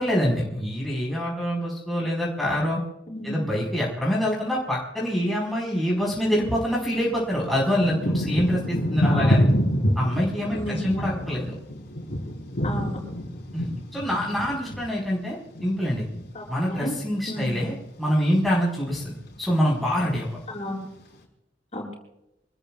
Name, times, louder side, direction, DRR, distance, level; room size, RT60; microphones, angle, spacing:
voice 1, 0.0-2.8 3.2-9.5 9.9-11.5 13.5-16.1 16.5-20.4, equal, ahead, -6 dB, 4.7 m, -25 dB
voice 2, 3.1-3.5 9.1-9.3 10.5-11.2 12.6-13.0 16.3-16.9 17.3-17.6 20.5-20.8 21.7-21.9, left 1 dB, 35° left, -1 dB, 7.1 m, -32 dB
Thunder / Rain, 6.3-6.4 7.1-16.6 16.9-17.7 18.3-18.6 18.9-19.7 20.3-20.4, equal, 60° left, 4.0 m, -27 dB
27.0 x 20.0 x 2.4 m, 0.87 s
head